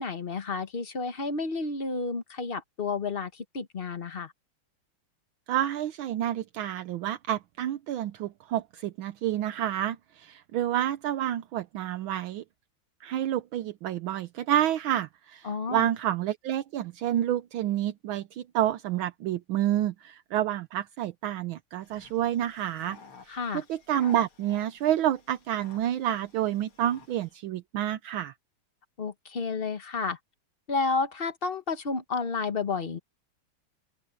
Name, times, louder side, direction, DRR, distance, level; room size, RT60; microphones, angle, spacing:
voice 1, 0.0-4.3 15.4-15.9 23.3-23.6 29.0-30.2 30.7-33.0, left 4 dB, 35° left, 1.2 m, -31 dB
voice 2, 5.5-12.4 13.0-23.0 23.3-28.3, right 11 dB, 75° right, 1.5 m, -29 dB
sound 1, 21.8-27.4, left 5 dB, 90° left, 3.5 m, -53 dB
open air
omnidirectional pair, 2.3 m